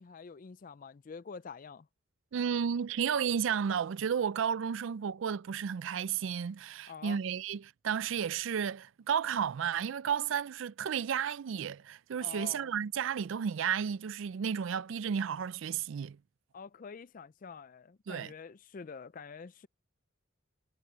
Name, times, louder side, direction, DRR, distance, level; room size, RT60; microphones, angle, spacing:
voice 1, 0.0-1.9 6.9-7.2 12.2-12.7 16.5-19.7, left 5 dB, 40° left, 0.4 m, -47 dB
voice 2, 2.3-16.2 18.1-18.3, right 7 dB, 65° right, 0.4 m, -32 dB
head